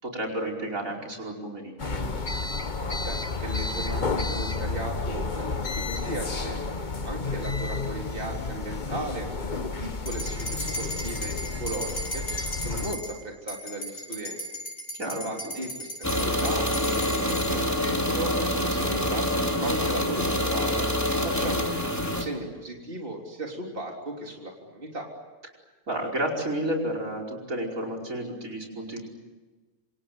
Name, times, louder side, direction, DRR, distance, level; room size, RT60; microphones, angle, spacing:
voice 1, 0.0-2.0 14.9-15.2 19.3-19.7 25.9-29.0, right 1 dB, 80° right, 3 dB, 5.6 m, -31 dB
sound 1, 1.8-13.0, left 3 dB, 35° left, 1.4 m, -31 dB
voice 2, 3.1-9.3 9.6-12.4 12.6-14.4 15.0-19.3 19.6-20.9 21.2-25.1, right 1 dB, 40° right, 0 dB, 3.9 m, -36 dB
sound 2, 10.1-13.1 13.5-17.5, equal, 65° left, 8.5 m, -36 dB
sound 3, 16.0-22.3, left 1 dB, 10° left, 3.0 m, -26 dB
27.5 x 27.0 x 7.9 m, 1.3 s
omnidirectional pair, 1.4 m